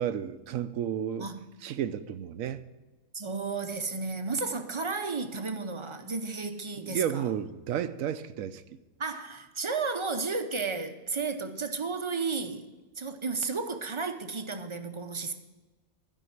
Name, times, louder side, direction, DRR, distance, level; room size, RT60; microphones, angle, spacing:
voice 1, 0.0-1.3 1.6-2.7 6.9-8.6, right 9 dB, 80° right, 1.0 m, -32 dB
voice 2, 3.1-7.2 9.0-12.7 13.0-15.3, right 4 dB, 30° right, 0.5 m, -33 dB
13.0 x 5.5 x 7.8 m
omnidirectional pair, 1.4 m